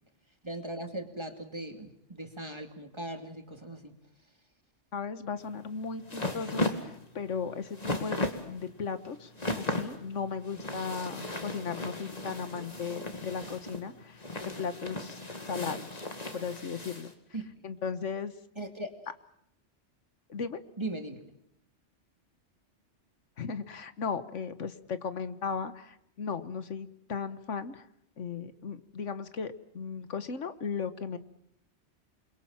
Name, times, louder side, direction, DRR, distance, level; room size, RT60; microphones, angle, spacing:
voice 1, 0.4-3.9 17.3-17.5 18.6-19.1 20.8-21.3, right 1 dB, 25° right, 5 dB, 2.6 m, -39 dB
voice 2, 4.9-8.2 8.5-14.2 14.6-15.2 15.5-16.0 16.3-17.1 17.6-18.3 20.3-20.6 23.4-27.9 28.2-31.2, left 6 dB, 85° left, 12 dB, 1.6 m, -36 dB
sound 1, 5.4-17.1, left 1 dB, 35° left, 2.3 m, -36 dB
28.5 x 22.0 x 7.4 m, 0.76 s
omnidirectional pair, 1.2 m